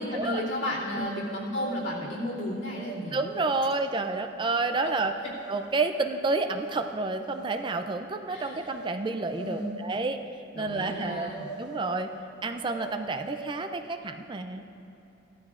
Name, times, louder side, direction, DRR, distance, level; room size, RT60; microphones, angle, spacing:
voice 1, 0.0-3.2 8.3-8.7 9.4-9.8 10.5-11.5, left 1 dB, 75° left, -7 dB, 2.7 m, -33 dB
sound 1, 1.0-2.1 2.7-3.0 3.3-3.9 4.7-4.9 5.3-5.8 6.6-6.9 7.2-7.9 8.6-8.9 9.2-9.8 10.8-11.0 11.3-12.1 12.7-13.7, right 4 dB, 5° right, 1.6 m, -42 dB
voice 2, 3.1-5.1 5.5-10.2 10.5-11.3 11.6-12.1 12.4-14.6, right 3 dB, 25° right, 7 dB, 0.4 m, -29 dB
16.5 x 13.0 x 2.5 m, 3.0 s
head